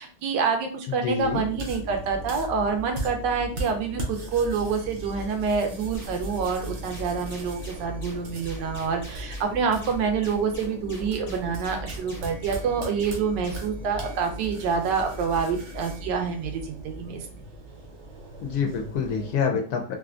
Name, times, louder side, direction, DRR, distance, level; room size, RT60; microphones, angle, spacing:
voice 1, 0.0-17.2, right 5 dB, 80° right, 5 dB, 1.3 m, -27 dB
voice 2, 0.9-1.4 18.4-20.0, left 6 dB, 70° left, 3 dB, 1.0 m, -27 dB
sound 1, 1.2-19.4, right 1 dB, 55° right, 0.8 m, -38 dB
sound 2, 5.9-13.8, left 1 dB, 30° left, 0.9 m, -45 dB
3.3 x 2.5 x 2.4 m, 0.41 s
omnidirectional pair, 1.9 m